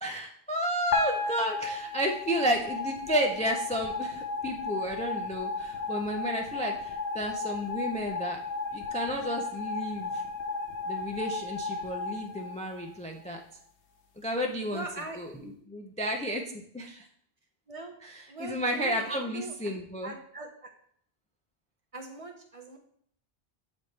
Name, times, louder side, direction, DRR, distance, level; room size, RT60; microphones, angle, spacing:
voice 1, 0.0-8.4 8.7-10.2 10.8-13.4 14.2-14.9 15.2-17.1 18.0-20.1, equal, 10° left, 2 dB, 0.3 m, -32 dB
sound 1, 0.9-13.2, left 3 dB, 85° left, 1.0 m, -34 dB
voice 2, 14.7-15.2 17.7-17.9 18.3-19.7 20.0-20.7 21.9-22.8, right 2 dB, 40° right, 3 dB, 0.7 m, -41 dB
7.7 x 4.1 x 3.2 m, 0.63 s
omnidirectional pair, 1.1 m